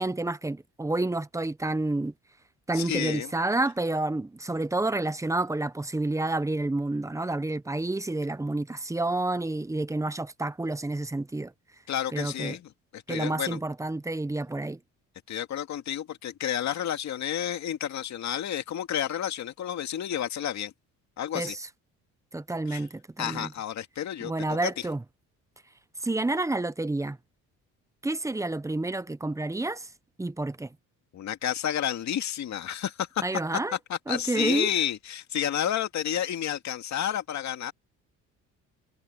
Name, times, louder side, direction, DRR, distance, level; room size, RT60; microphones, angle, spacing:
voice 1, 0.0-2.1 2.7-11.5 12.1-12.6 13.1-14.8 21.3-21.7 22.3-23.5 24.2-25.0 26.0-27.2 28.0-29.9 30.2-30.7 33.2-33.8 34.1-34.7, right 2 dB, 10° right, 0.9 m, -29 dB
voice 2, 2.7-3.3 11.9-13.6 15.3-20.7 21.2-21.5 22.7-22.8 23.2-24.9 31.1-33.2 33.9-37.7, left 10 dB, 55° left, 2.2 m, -31 dB
cardioid pair, 110°, 33 cm